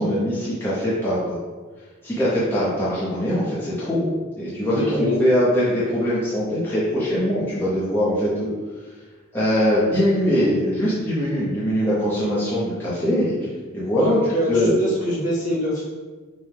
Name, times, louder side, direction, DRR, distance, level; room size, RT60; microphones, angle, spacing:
voice 1, 0.0-1.4 2.0-4.1 4.4-8.5 9.3-13.5 13.7-14.7, equal, 10° left, -10 dB, 0.8 m, -22 dB
voice 2, 4.7-5.1 14.0-15.8, right 1 dB, 40° left, -7 dB, 1.3 m, -25 dB
5.3 x 2.2 x 3.3 m, 1.3 s
head